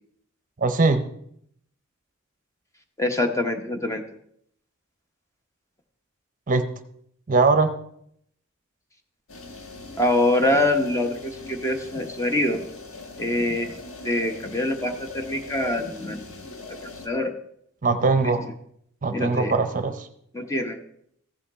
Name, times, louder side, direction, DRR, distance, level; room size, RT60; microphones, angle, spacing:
voice 1, 0.6-1.0 6.5-6.6 7.3-7.7 17.8-18.4 19.0-20.1, right 3 dB, 40° right, 9 dB, 0.7 m, -21 dB
voice 2, 3.0-4.0 10.0-12.6 13.2-13.8 14.0-17.3 18.2-18.3 19.1-19.5 20.3-20.8, left 1 dB, 15° left, 6 dB, 0.8 m, -25 dB
sound 1, 9.3-17.1, left 3 dB, 70° left, 1.2 m, -40 dB
15.0 x 5.7 x 4.2 m, 0.70 s
head